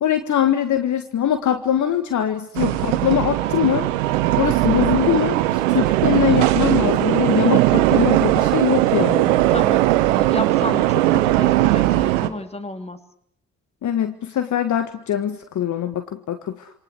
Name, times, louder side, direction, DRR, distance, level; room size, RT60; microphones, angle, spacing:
voice 1, 0.0-3.9 4.4-9.4 13.8-16.7, left 9 dB, 50° left, 9 dB, 1.7 m, -22 dB
sound 1, 2.5-12.3, right 16 dB, 75° right, 1.4 m, -18 dB
voice 2, 10.1-13.0, left 2 dB, 15° left, 8 dB, 3.4 m, -31 dB
27.5 x 26.5 x 6.4 m, 0.67 s
figure-of-eight pair, 45°, 38 cm